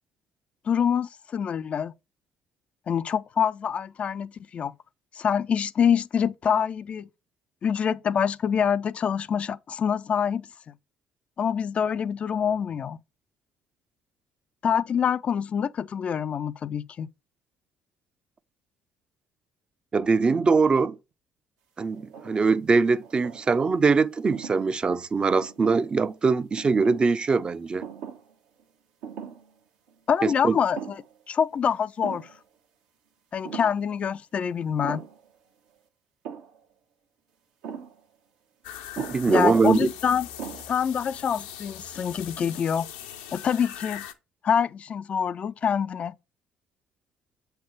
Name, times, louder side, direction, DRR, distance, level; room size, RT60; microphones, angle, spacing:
voice 1, 0.7-1.9 2.9-4.7 5.2-7.1 7.6-10.5 11.4-13.0 14.6-17.1 30.1-31.0 31.3-32.3 33.3-35.0 39.3-40.3 40.7-42.9 43.3-44.0 44.4-46.1, left 7 dB, 45° left, 0.4 m, -26 dB
voice 2, 19.9-21.0 21.8-27.8 30.2-30.6 39.0-39.9, right 4 dB, 35° right, 0.6 m, -22 dB
sound 1, 21.9-22.5 23.0-23.7 24.3-24.6 25.4-26.1 26.6-27.1 27.8-28.3 28.6-28.7 29.0-29.5 29.9-30.0 30.5-31.2 31.5-31.6 32.0-32.4 33.4-33.8 34.8-35.3 36.2-36.6 37.6-38.0 39.0-39.3 40.0-40.1 40.4-40.9, right 7 dB, 75° right, 1.1 m, -40 dB
sound 2, 38.6-44.1, left 10 dB, 80° left, 0.7 m, -41 dB
7.6 x 3.4 x 5.1 m
hypercardioid pair, 55°, 3 cm